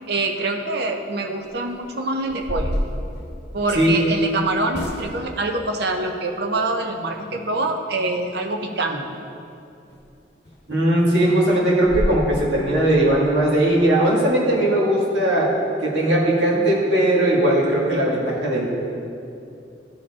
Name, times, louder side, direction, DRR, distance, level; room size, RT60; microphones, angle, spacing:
voice 1, 0.1-2.8 3.5-9.1, right 2 dB, 60° right, 4 dB, 0.7 m, -25 dB
sound 1, 1.4-1.7 2.2-4.0 4.7-5.4 9.9-10.0 10.4-10.6 11.0-11.1 11.4-11.5 11.8-12.2, equal, 65° left, 0.9 m, -28 dB
voice 2, 10.7-15.5 15.8-18.7, right 1 dB, 80° right, -5 dB, 1.9 m, -19 dB
13.0 x 4.8 x 3.6 m, 2.6 s
head